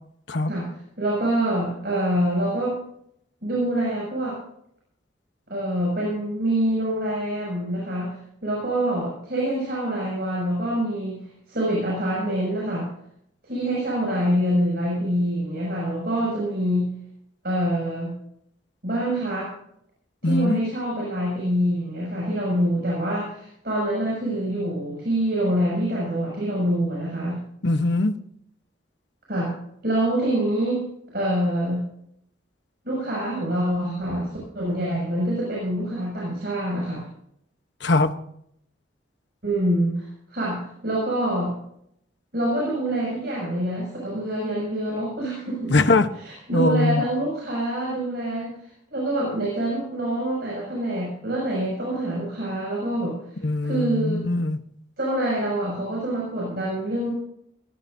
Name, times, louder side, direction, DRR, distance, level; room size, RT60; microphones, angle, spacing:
voice 1, 1.0-2.8 3.4-4.4 5.5-12.9 13.4-16.9 17.4-18.1 18.8-19.5 20.2-27.4 29.3-29.5 29.8-30.8 31.1-31.8 32.8-34.3 34.5-37.1 39.4-41.5 42.3-45.7 46.5-53.2 53.6-54.2 55.0-57.1, right 1 dB, 55° right, -4 dB, 6.7 m, -25 dB
voice 2, 20.2-20.6 27.6-28.2 37.8-38.1 45.7-46.1 46.5-47.0 53.4-54.6, left 2 dB, 65° left, 9 dB, 1.1 m, -21 dB
19.5 x 17.5 x 2.7 m, 0.71 s
head